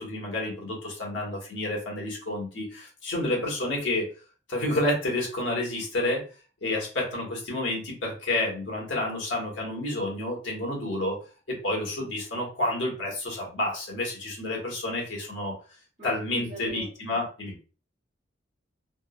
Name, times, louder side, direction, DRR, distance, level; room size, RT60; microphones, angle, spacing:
voice 1, 0.0-4.1 4.5-6.3 6.6-11.2 11.5-15.5 16.0-17.5, left 1 dB, 85° left, -2 dB, 1.3 m, -30 dB
voice 2, 16.0-16.9, equal, 35° right, -8 dB, 0.8 m, -41 dB
3.5 x 2.0 x 2.4 m, 0.35 s
head